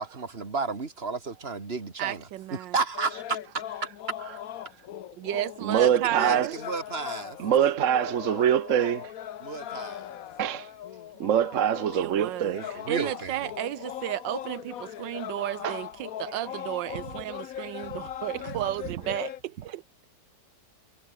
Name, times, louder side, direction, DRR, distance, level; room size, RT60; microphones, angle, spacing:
voice 1, 0.0-3.2 5.7-7.4 9.4-10.1 12.7-13.4, right 4 dB, 35° right, 2.5 m, -33 dB
voice 2, 2.0-2.7 5.2-6.6 11.9-19.8, right 14 dB, 85° right, 1.4 m, -33 dB
sound 1, 2.9-19.4, left 11 dB, 60° left, 1.1 m, -39 dB
voice 3, 5.6-6.6 7.4-9.1 10.4-10.7 11.2-12.8 15.6-15.8 17.6-17.7, right 9 dB, 55° right, 1.0 m, -24 dB
omnidirectional pair, 2.0 m